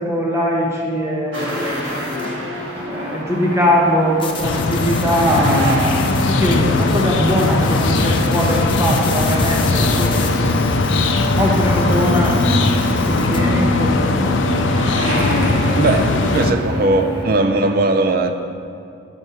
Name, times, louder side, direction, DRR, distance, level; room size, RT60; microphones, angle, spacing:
voice 1, 0.0-2.3 2.9-10.6 10.9-12.4 13.1-14.7, equal, 15° right, -2 dB, 0.9 m, -21 dB
sound 1, 1.3-2.4 4.2-13.4, left 5 dB, 25° left, 0.5 m, -32 dB
sound 2, 1.3-9.6 10.3-10.6 11.0-17.8, equal, 85° right, 1.5 m, -27 dB
sound 3, 4.4-16.5, left 2 dB, 80° left, 0.5 m, -19 dB
voice 2, 15.7-18.3, right 2 dB, 50° right, 7 dB, 0.4 m, -18 dB
6.2 x 5.3 x 5.5 m, 2.5 s
head